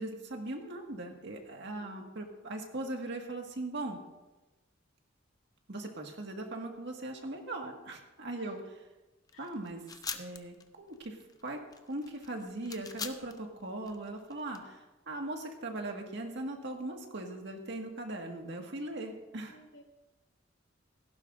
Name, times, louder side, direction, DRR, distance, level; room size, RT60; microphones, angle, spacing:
voice 1, 0.0-4.0 5.7-8.8 9.4-9.8 10.1-11.6 11.9-19.5, right 2 dB, 65° right, 2 dB, 1.8 m, -39 dB
voice 2, 1.8-2.2 8.3-8.6 9.3-9.5 19.5-19.8, equal, 80° left, 1 dB, 2.2 m, -58 dB
sound 1, 9.3-14.6, left 5 dB, 20° left, 0.7 m, -43 dB
17.5 x 15.0 x 2.6 m, 1.1 s
head